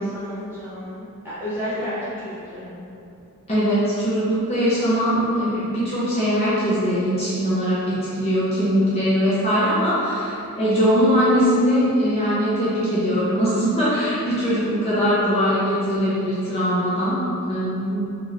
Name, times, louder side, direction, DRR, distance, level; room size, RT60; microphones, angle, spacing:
voice 1, 0.1-2.0 2.2-2.8, equal, 10° right, -13 dB, 1.0 m, -32 dB
voice 2, 3.5-17.2 17.5-18.1, equal, 30° left, -11 dB, 0.8 m, -21 dB
3.1 x 2.6 x 3.1 m, 2.7 s
head